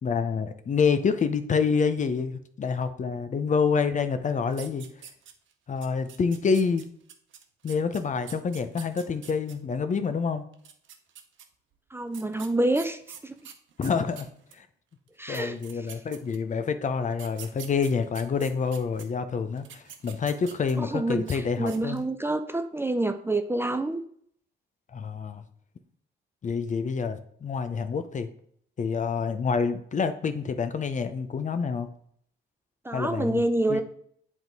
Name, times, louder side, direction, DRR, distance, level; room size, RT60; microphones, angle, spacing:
voice 1, 0.0-4.9 5.7-6.9 7.6-10.4 13.8-14.3 14.5-14.7 15.3-22.0 24.9-25.4 26.4-28.3 28.8-31.9 32.9-33.4 33.7-33.8, left 5 dB, 40° left, 10 dB, 0.7 m, -27 dB
sound 1, 4.5-5.5 5.8-9.5 10.5-11.4 12.1-14.6 15.1-15.2 15.3-16.5 17.1-19.0 19.6-20.9 21.2-21.4 21.7-22.1, right 8 dB, 75° right, 0.9 m, -46 dB
voice 2, 11.9-13.5 15.2-15.6 20.8-24.0 32.8-33.8, right 2 dB, 10° right, 8 dB, 0.5 m, -27 dB
7.9 x 3.7 x 4.6 m, 0.64 s
cardioid pair, 90°, 20 cm